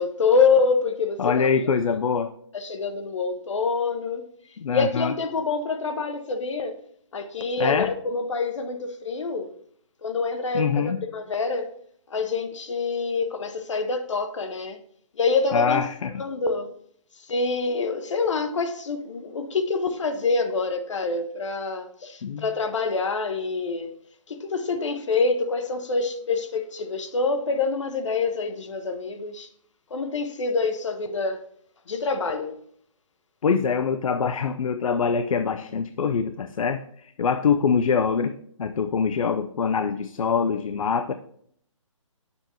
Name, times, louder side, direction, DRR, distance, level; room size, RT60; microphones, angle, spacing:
voice 1, 0.0-1.6 2.5-4.2 4.7-6.8 7.1-9.5 10.0-11.7 12.1-14.8 15.2-15.8 16.2-16.7 17.3-23.9 24.3-29.5 29.9-31.5 31.9-32.5, left 4 dB, 65° left, 0.8 m, -26 dB
voice 2, 1.2-2.3 4.6-5.1 7.6-7.9 10.5-11.0 15.5-16.1 22.2-22.5 33.4-41.1, left 6 dB, 85° left, 0.5 m, -24 dB
7.8 x 6.9 x 2.9 m
hypercardioid pair, 170°, 17 cm